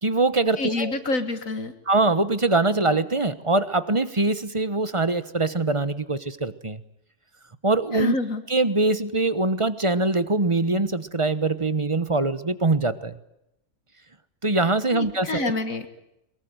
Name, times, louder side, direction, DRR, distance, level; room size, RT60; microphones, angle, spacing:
voice 1, 0.0-0.9 1.9-6.8 7.6-8.1 8.5-13.1 14.4-15.5, right 2 dB, 25° right, 13 dB, 1.1 m, -23 dB
voice 2, 0.6-1.7 7.9-8.4 14.9-15.9, left 3 dB, 65° left, 8 dB, 2.1 m, -27 dB
23.0 x 22.0 x 9.1 m, 0.85 s
omnidirectional pair, 1.5 m